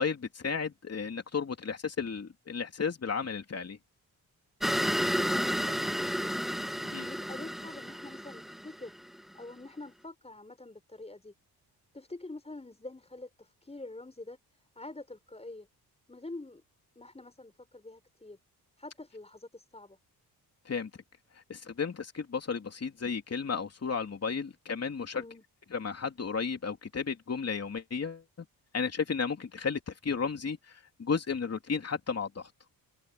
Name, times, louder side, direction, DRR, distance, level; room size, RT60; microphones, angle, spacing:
voice 1, 0.0-3.8 6.9-7.1 20.7-20.9 21.5-25.2 25.7-28.2 28.7-30.6 31.0-32.4, left 5 dB, 40° left, 3.3 m, -33 dB
sound 1, 4.6-9.2, equal, ahead, 1.0 m, -31 dB
voice 2, 4.9-6.4 7.0-9.0 9.3-11.3 11.9-14.4 14.7-15.7 16.1-16.6 16.9-18.4 18.8-20.0 25.2-25.4, left 2 dB, 15° left, 6.6 m, -46 dB
cardioid pair, 90°, 39 cm